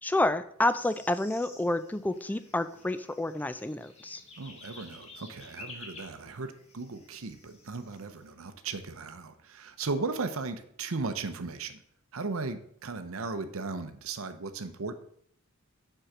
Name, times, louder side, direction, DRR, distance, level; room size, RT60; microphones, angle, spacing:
voice 1, 0.0-4.2, left 1 dB, 10° left, 12 dB, 0.3 m, -29 dB
sound 1, 0.7-8.3, left 2 dB, 30° left, 1.6 m, -51 dB
voice 2, 4.4-11.8 12.1-15.0, right 3 dB, 70° right, 9 dB, 0.7 m, -36 dB
6.5 x 4.6 x 5.9 m, 0.66 s
head